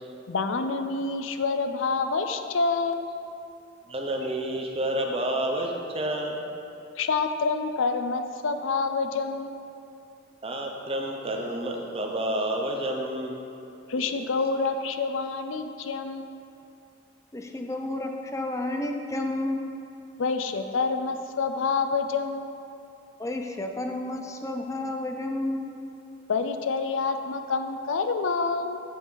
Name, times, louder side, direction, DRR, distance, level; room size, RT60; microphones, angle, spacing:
voice 1, 0.3-3.1 7.0-9.5 13.9-16.3 20.2-22.5 26.3-28.8, left 4 dB, 75° left, 8 dB, 0.5 m, -27 dB
voice 2, 3.9-6.4 10.4-13.3, right 1 dB, 30° right, 1 dB, 0.8 m, -29 dB
voice 3, 17.3-19.6 23.2-25.7, left 1 dB, 15° left, 4 dB, 0.5 m, -31 dB
7.8 x 7.8 x 4.0 m, 2.6 s
head